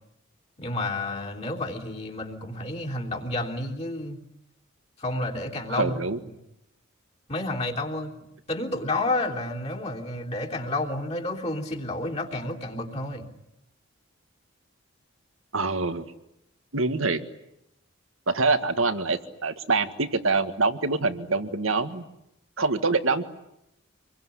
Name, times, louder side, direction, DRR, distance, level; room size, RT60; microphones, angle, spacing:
voice 1, 0.6-4.2 5.0-6.0 7.3-8.1 8.5-13.3, left 2 dB, 30° left, -1 dB, 3.4 m, -30 dB
voice 2, 5.7-6.2 15.5-16.0 16.7-17.2 18.3-22.1 22.6-23.2, right 3 dB, 80° right, 9 dB, 1.8 m, -25 dB
27.0 x 22.0 x 10.0 m, 0.84 s
head